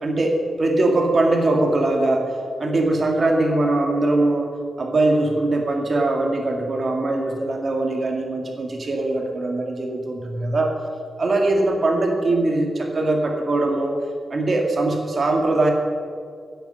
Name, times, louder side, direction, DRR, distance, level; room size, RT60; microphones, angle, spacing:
voice 1, 0.0-4.5 4.8-10.7 11.2-13.9 14.3-15.7, right 2 dB, 50° right, 1 dB, 1.8 m, -21 dB
16.5 x 8.2 x 5.6 m, 2.3 s
cardioid pair, 80°, 0 cm